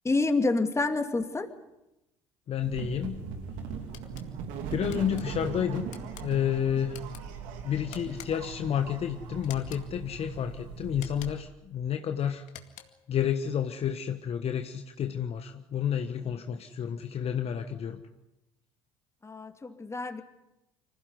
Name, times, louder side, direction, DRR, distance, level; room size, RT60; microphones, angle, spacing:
voice 1, 0.0-1.5 19.2-20.2, left 3 dB, 20° left, 6 dB, 2.7 m, -28 dB
voice 2, 2.5-3.2 4.7-5.8 6.2-7.0 7.6-12.4 13.1-18.0, left 9 dB, 45° left, 7 dB, 1.4 m, -30 dB
sound 1, 2.6-11.3, right 6 dB, 65° right, 3.0 m, -39 dB
sound 2, 3.9-4.3 4.9-5.2 5.9-6.3 6.9-7.2 7.9-8.5 9.4-9.9 10.9-11.5 12.4-13.1, left 11 dB, 60° left, 2.2 m, -48 dB
25.5 x 16.0 x 9.6 m, 0.92 s
hypercardioid pair, 60°, 14 cm